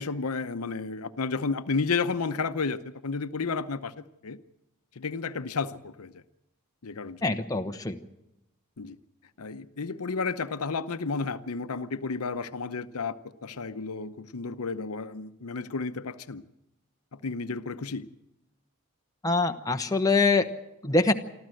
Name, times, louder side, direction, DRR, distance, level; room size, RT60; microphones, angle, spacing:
voice 1, 0.0-4.4 5.0-6.2 6.8-7.4 8.8-9.0 9.4-13.2 13.4-16.4 17.1-18.1, left 4 dB, 85° left, 12 dB, 0.8 m, -32 dB
voice 2, 7.2-8.0 19.2-20.5 20.8-21.1, left 3 dB, 15° left, 5 dB, 0.9 m, -24 dB
25.0 x 14.0 x 7.8 m, 0.90 s
head